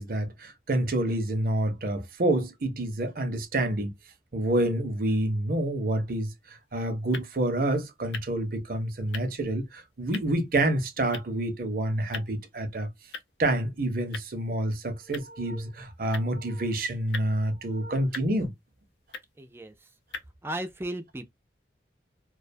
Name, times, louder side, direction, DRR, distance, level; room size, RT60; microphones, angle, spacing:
voice 1, 0.0-3.9 4.3-12.9 13.4-18.5, right 1 dB, 50° right, 0.6 m, -28 dB
sound 1, 6.4-20.3, left 5 dB, 80° left, 0.5 m, -46 dB
voice 2, 19.4-19.7 20.4-21.3, right 1 dB, 15° right, 0.4 m, -35 dB
2.4 x 2.2 x 2.5 m
head